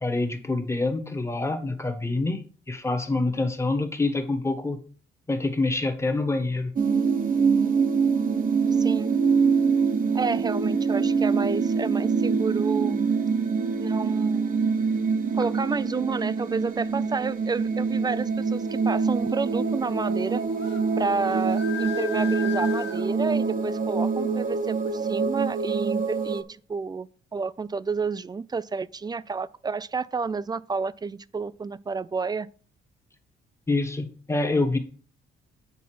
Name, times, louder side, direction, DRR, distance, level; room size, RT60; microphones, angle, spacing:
voice 1, 0.0-2.4 2.7-4.8 5.3-6.7 33.7-34.8, left 2 dB, 15° left, 1.3 m, -26 dB
sound 1, 6.8-26.4, right 5 dB, 45° right, 1.1 m, -25 dB
voice 2, 8.7-9.2 10.1-13.1 13.8-14.6 15.3-20.4 21.0-26.4 26.7-32.5, right 4 dB, 20° right, 0.3 m, -30 dB
sound 2, 20.6-20.8 21.2-23.0, left 9 dB, 60° left, 1.6 m, -36 dB
8.4 x 3.9 x 5.9 m
cardioid pair, 90°, 20 cm